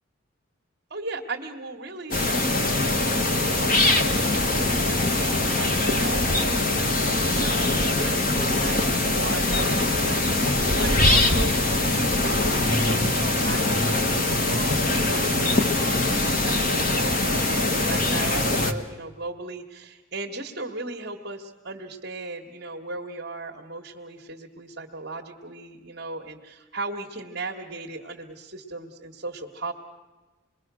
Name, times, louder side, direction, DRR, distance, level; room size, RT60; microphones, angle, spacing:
voice 1, 0.9-29.7, right 2 dB, 50° right, 1 dB, 1.6 m, -37 dB
sound 1, 2.1-18.7, left 2 dB, 40° left, 1.4 m, -22 dB
27.0 x 21.5 x 6.3 m, 1.2 s
head